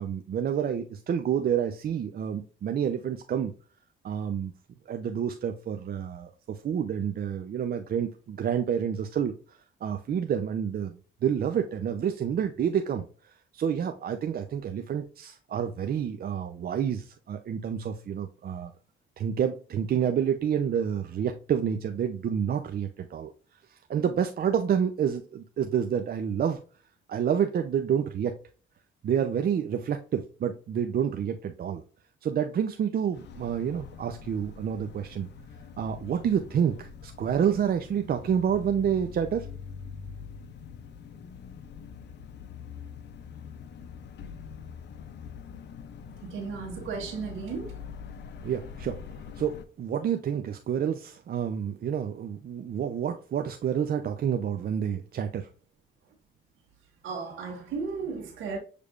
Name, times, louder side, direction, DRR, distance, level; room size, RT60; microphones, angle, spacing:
voice 1, 0.0-3.5 4.0-4.5 4.9-11.0 11.2-18.7 19.2-23.3 23.7-26.6 27.1-28.4 29.0-31.8 32.2-35.3 35.8-39.5 48.4-49.0 49.4-55.5, right 8 dB, 50° right, 0.6 m, -29 dB
sound 1, 33.1-49.6, left 6 dB, 60° left, 0.7 m, -44 dB
voice 2, 46.2-47.7 57.0-58.6, right 5 dB, 80° right, 1.5 m, -35 dB
6.6 x 3.3 x 2.4 m
cardioid pair, 90°, 20 cm